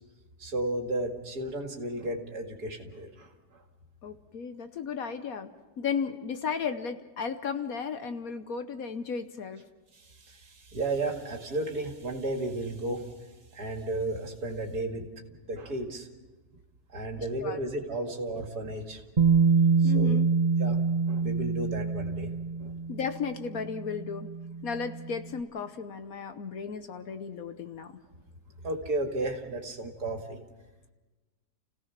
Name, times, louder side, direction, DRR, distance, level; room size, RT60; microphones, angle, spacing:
voice 1, 0.4-3.6 9.9-13.1 13.5-16.1 16.9-19.0 19.8-20.2 20.6-22.8 28.6-30.4, right 2 dB, 65° right, 3 dB, 2.7 m, -34 dB
voice 2, 4.0-5.5 5.8-9.6 17.4-17.6 19.8-20.3 22.9-24.3 24.6-27.9, left 6 dB, 60° left, 9 dB, 1.3 m, -34 dB
Bass guitar, 19.2-25.2, right 5 dB, 30° right, 0.9 m, -26 dB
29.5 x 16.5 x 5.9 m, 1.2 s
omnidirectional pair, 1.8 m